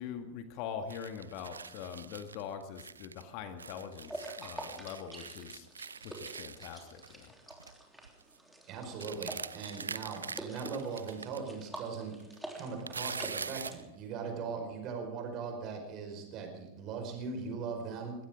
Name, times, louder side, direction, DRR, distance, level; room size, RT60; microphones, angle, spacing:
voice 1, 0.0-5.7 6.0-7.3, left 7 dB, 45° left, 8 dB, 1.7 m, -43 dB
sound 1, 0.9-3.2 3.6-7.3 7.5-7.7 8.0-8.4 9.0-11.4 11.8-11.9 12.2-13.8, right 5 dB, 75° right, 0.5 m, -43 dB
sound 2, 4.0-13.8, right 1 dB, 5° right, 3.4 m, -48 dB
voice 2, 8.7-12.1 12.5-18.1, right 5 dB, 35° right, 4 dB, 5.0 m, -39 dB
22.0 x 17.5 x 3.8 m, 0.97 s
figure-of-eight pair, 90°, 0 cm